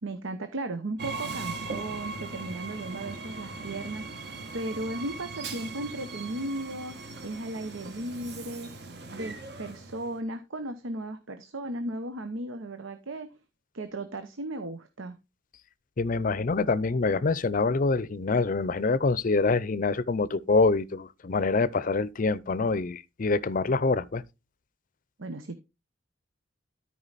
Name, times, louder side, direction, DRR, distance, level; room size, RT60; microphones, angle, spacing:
voice 1, 0.0-4.0 4.5-6.9 7.2-8.7 9.1-13.3 13.7-15.2 25.2-25.6, right 2 dB, 90° right, 0.9 m, -35 dB
Train, 1.0-10.2, right 3 dB, 55° right, 1.4 m, -39 dB
voice 2, 16.0-24.2, left 3 dB, 45° left, 0.5 m, -25 dB
13.0 x 4.8 x 4.0 m
head